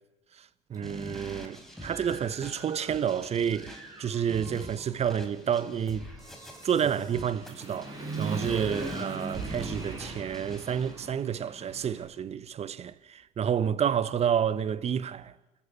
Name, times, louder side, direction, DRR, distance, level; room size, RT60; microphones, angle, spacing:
voice 1, 0.3-6.1 6.6-15.3, right 8 dB, 35° right, 1.1 m, -30 dB
Human voice / Motorcycle, 0.7-0.8 1.3-3.1 3.5-12.1, right 2 dB, 20° right, 7.6 m, -41 dB
sound 1, 0.8-10.9, equal, ahead, 4.3 m, -45 dB
sound 2, 9.2-12.2 12.5-12.6, right 7 dB, 65° right, 3.7 m, -45 dB
26.5 x 14.5 x 8.4 m
hypercardioid pair, 80°, 18 cm